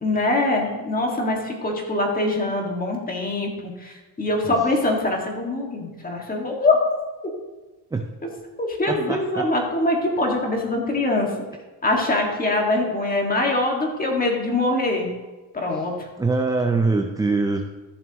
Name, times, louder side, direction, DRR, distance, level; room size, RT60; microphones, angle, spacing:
voice 1, 0.0-6.8 8.6-11.3 11.8-15.1 15.5-15.9, left 2 dB, 20° left, 0 dB, 1.9 m, -23 dB
voice 2, 8.9-9.5 15.7-15.9 16.2-17.6, right 3 dB, 10° right, 4 dB, 0.4 m, -23 dB
14.0 x 7.2 x 3.0 m, 1.2 s
cardioid pair, 130°, 41 cm